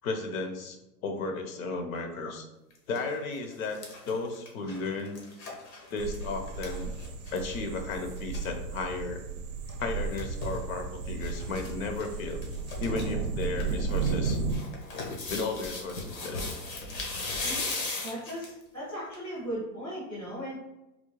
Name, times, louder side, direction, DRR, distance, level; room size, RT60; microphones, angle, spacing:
voice 1, 0.0-2.5 2.9-3.8 4.0-5.2 5.9-6.9 7.3-9.2 9.8-12.4 12.8-14.4 15.3-16.6, left 3 dB, 55° left, 5 dB, 0.6 m, -34 dB
sound 1, 2.7-3.0 3.4-7.6 7.9-8.4 9.7-10.6 11.2-11.7 12.0-12.1 12.4-13.0 13.4-18.6 19.1-19.2, left 3 dB, 85° left, 1.1 m, -37 dB
sound 2, 6.0-14.6, right 4 dB, 60° right, 0.5 m, -34 dB
voice 2, 17.4-20.6, equal, 5° left, -8 dB, 0.4 m, -38 dB
3.6 x 2.1 x 3.0 m, 0.94 s
hypercardioid pair, 150°, 49 cm